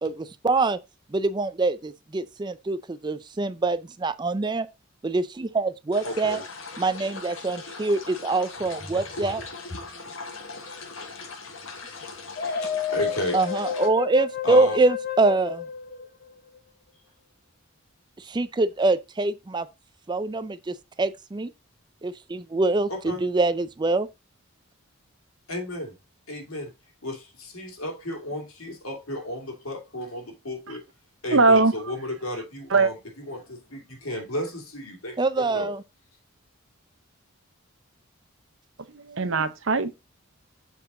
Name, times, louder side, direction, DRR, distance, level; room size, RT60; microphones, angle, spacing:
voice 1, 0.0-0.8 1.1-4.7 5.0-6.4 6.8-9.4 13.3-15.6 18.3-19.7 20.1-21.5 22.0-24.1 35.2-35.8, right 3 dB, 20° right, 0.4 m, -24 dB
sound 1, 5.9-13.9, left 4 dB, 70° left, 1.5 m, -39 dB
voice 2, 6.0-6.5 9.2-9.3 9.9-10.0 12.6-13.4 14.4-14.8 22.9-23.2 25.5-25.9 26.3-26.7 27.0-30.8 31.2-33.0 33.3-35.7, left 1 dB, 85° left, 2.6 m, -33 dB
sound 2, 12.4-16.6, left 8 dB, 45° left, 0.9 m, -31 dB
voice 3, 31.3-31.7 32.7-32.9 38.9-39.9, right 3 dB, 65° right, 0.8 m, -20 dB
7.1 x 4.6 x 3.8 m
head